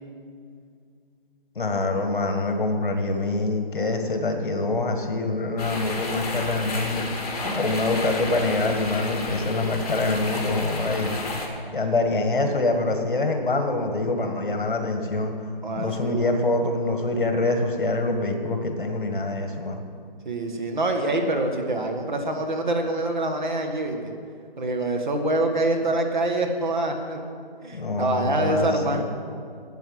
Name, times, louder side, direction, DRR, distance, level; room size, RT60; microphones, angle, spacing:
voice 1, 1.5-7.3 7.5-11.1 11.7-15.3 15.8-19.8 27.7-29.0, left 2 dB, 60° left, 5 dB, 1.6 m, -25 dB
sound 1, 5.6-11.5, left 2 dB, 40° left, 1.9 m, -31 dB
voice 2, 15.6-16.4 20.2-24.1 24.6-27.2 27.6-29.0, right 2 dB, 50° right, 4 dB, 1.5 m, -25 dB
9.3 x 8.0 x 7.8 m, 2.3 s
hypercardioid pair, 170°, 30 cm